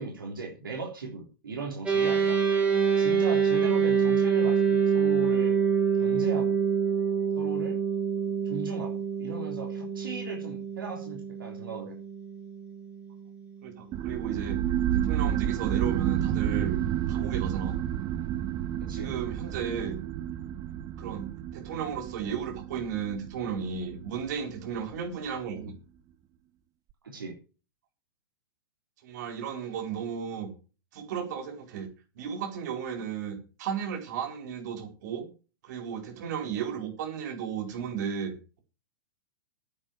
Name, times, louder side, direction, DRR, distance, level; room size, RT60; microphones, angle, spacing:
voice 1, 0.0-2.4 3.0-5.6 6.0-6.6 7.4-7.8 8.4-8.9 9.2-11.9 18.8-19.1 27.0-27.4, right 4 dB, 70° right, 0 dB, 3.6 m, -37 dB
sound 1, 1.9-13.4, right 6 dB, 10° right, 3.7 m, -26 dB
voice 2, 13.6-14.6 14.9-16.8 17.1-17.8 18.9-20.0 21.0-25.7 29.0-30.5 30.9-31.9 32.1-35.3 35.6-38.6, right 7 dB, 50° right, 3 dB, 4.4 m, -34 dB
sound 2, 13.9-25.0, right 11 dB, 30° right, 0.9 m, -30 dB
10.0 x 8.8 x 7.4 m, 0.35 s
figure-of-eight pair, 100°, 12 cm